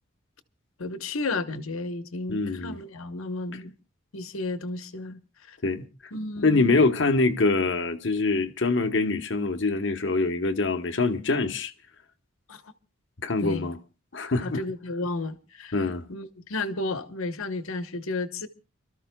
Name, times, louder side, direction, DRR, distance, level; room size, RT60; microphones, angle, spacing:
voice 1, 0.8-3.7 4.1-5.2 5.5-5.6 6.1-6.8 12.5-12.6 13.4-13.7 14.4-15.7 16.1-18.5, left 2 dB, 85° left, 1.0 m, -33 dB
voice 2, 2.3-2.8 5.6-5.9 6.4-11.7 13.2-13.8 14.1-14.6 15.7-16.0, left 3 dB, 60° left, 1.0 m, -24 dB
30.0 x 13.0 x 2.2 m
head